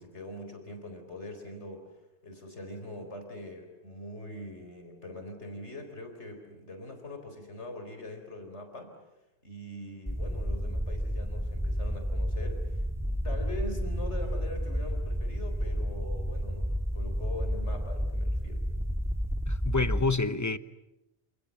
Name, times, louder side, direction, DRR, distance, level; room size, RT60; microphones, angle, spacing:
voice 1, 0.0-1.8 2.2-8.9 9.4-18.6, left 1 dB, 85° left, 4.8 m, -42 dB
sound 1, 10.1-20.1, equal, ahead, 2.1 m, -31 dB
voice 2, 19.5-20.6, left 3 dB, 15° left, 0.9 m, -28 dB
28.5 x 28.0 x 7.4 m
omnidirectional pair, 1.1 m